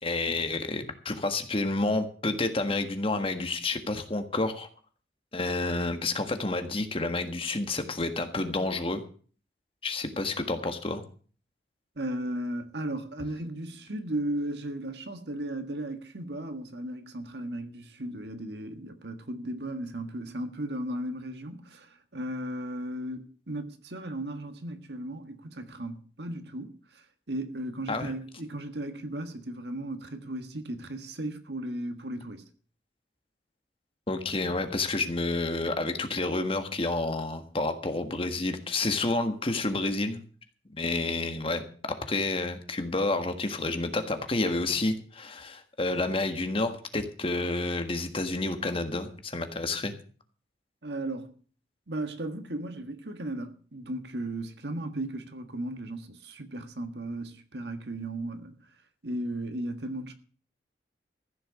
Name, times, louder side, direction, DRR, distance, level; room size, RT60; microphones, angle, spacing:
voice 1, 0.0-4.7 5.3-9.0 9.8-11.0 27.9-28.1 34.1-40.2 40.7-49.9, left 2 dB, 30° left, 1.6 m, -29 dB
voice 2, 11.9-32.5 50.8-51.4 51.9-58.7 59.0-60.1, right 1 dB, 70° right, 1.6 m, -36 dB
15.0 x 6.9 x 8.0 m
head